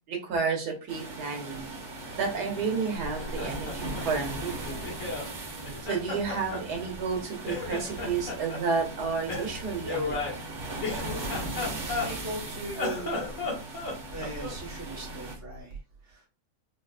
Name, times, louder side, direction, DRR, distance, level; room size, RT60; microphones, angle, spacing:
voice 1, 0.1-1.7 2.1-4.8 5.9-10.2, right 5 dB, 85° right, 2 dB, 1.6 m, -31 dB
sound 1, 0.9-15.4, right 2 dB, 40° right, 0.8 m, -39 dB
sound 2, 1.4-15.6, left 1 dB, 20° left, 1.1 m, -48 dB
Laughter, 3.0-5.3 5.6-7.2 7.4-8.6 9.3-12.4 12.7-14.6, left 3 dB, 55° left, 1.7 m, -34 dB
voice 2, 11.5-13.2 14.1-15.8 16.1-16.2, right 2 dB, 10° right, -2 dB, 1.1 m, -39 dB
5.2 x 2.4 x 2.4 m, 0.32 s
omnidirectional pair, 1.7 m